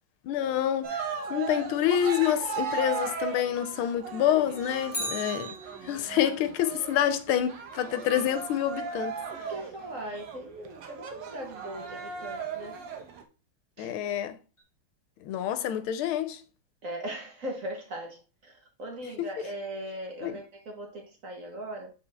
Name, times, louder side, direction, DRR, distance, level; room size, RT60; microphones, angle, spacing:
voice 1, 0.2-5.5 5.8-9.2 13.8-14.4 15.2-16.4 19.2-19.3 20.2-20.4, left 10 dB, 85° left, 1.5 m, -27 dB
Cheering, 0.8-13.2, right 6 dB, 65° right, 1.5 m, -37 dB
Bicycle, 4.9-6.3 14.6-14.7, equal, 20° left, 0.9 m, -37 dB
voice 2, 9.3-12.8 13.8-13.9 16.8-21.9, right 1 dB, 45° right, 1.2 m, -39 dB
7.0 x 4.2 x 3.3 m
omnidirectional pair, 2.3 m